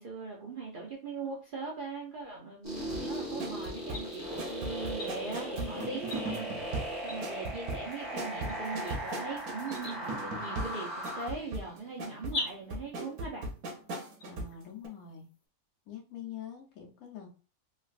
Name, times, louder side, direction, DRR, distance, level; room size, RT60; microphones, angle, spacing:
voice 1, 0.0-6.5 7.0-13.5, right 4 dB, 60° right, -2 dB, 0.5 m, -40 dB
sound 1, 2.6-11.3, equal, 15° right, 1.0 m, -38 dB
sound 2, 2.9-14.6 14.8-14.9, right 2 dB, 90° right, 1.2 m, -39 dB
sound 3, 3.6-15.4, left 1 dB, 40° left, 0.6 m, -46 dB
voice 2, 14.3-15.3 15.9-17.3, left 8 dB, 80° left, 1 dB, 1.1 m, -44 dB
3.2 x 2.4 x 2.4 m, 0.37 s
omnidirectional pair, 1.5 m